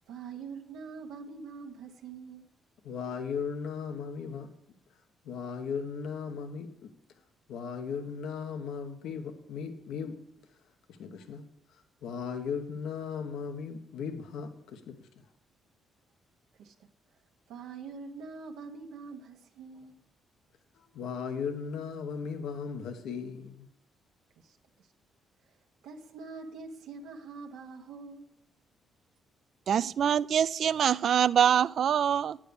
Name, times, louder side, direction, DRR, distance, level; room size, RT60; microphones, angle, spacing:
voice 1, 0.1-2.5 16.6-16.9 17.5-19.9 24.4-24.9 25.8-28.3, right 4 dB, 85° right, 1.0 m, -44 dB
voice 2, 2.8-4.5 5.2-6.9 7.5-10.2 10.9-11.4 12.0-15.1 20.7-23.7, left 6 dB, 80° left, 1.0 m, -37 dB
voice 3, 29.7-32.4, right 8 dB, 60° right, 0.3 m, -24 dB
9.2 x 7.5 x 6.9 m
cardioid pair, 90°, 0 cm